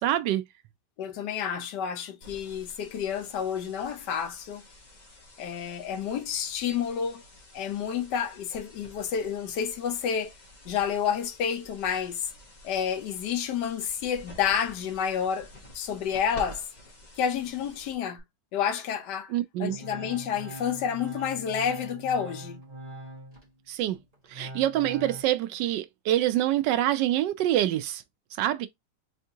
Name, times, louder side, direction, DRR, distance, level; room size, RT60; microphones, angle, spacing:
voice 1, 0.0-0.4 19.3-19.8 23.7-24.0 24.3-28.0 28.4-28.7, right 13 dB, 85° right, 1.2 m, -26 dB
voice 2, 1.0-4.6 5.4-7.2 7.5-10.3 10.6-12.3 12.6-16.6 17.2-18.2 18.5-19.3 19.6-22.6, left 8 dB, 75° left, 1.3 m, -30 dB
sound 1, 2.2-18.2, equal, 30° left, 1.0 m, -50 dB
Organ, 19.7-23.5 23.9-25.2, right 1 dB, 25° right, 1.3 m, -42 dB
3.6 x 3.5 x 2.7 m
omnidirectional pair, 1.8 m